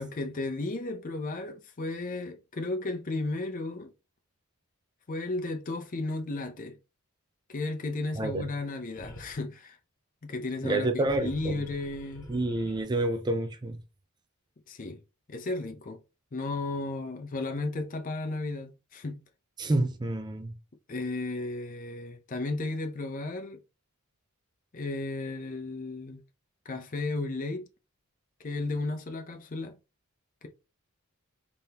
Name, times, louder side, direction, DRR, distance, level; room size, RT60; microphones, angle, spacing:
voice 1, 0.0-3.9 5.1-6.8 7.5-9.8 10.2-12.3 14.7-15.0 15.3-16.0 16.3-19.2 20.9-23.6 24.7-26.2 26.6-27.7 28.4-29.8, left 2 dB, 40° left, 0.5 m, -34 dB
voice 2, 8.2-8.5 10.6-11.6 12.3-13.8 19.6-20.5, right 2 dB, 20° right, 0.4 m, -28 dB
sound 1, 8.8-9.4 10.8-12.8, left 1 dB, 65° left, 1.0 m, -47 dB
3.7 x 3.4 x 2.8 m
head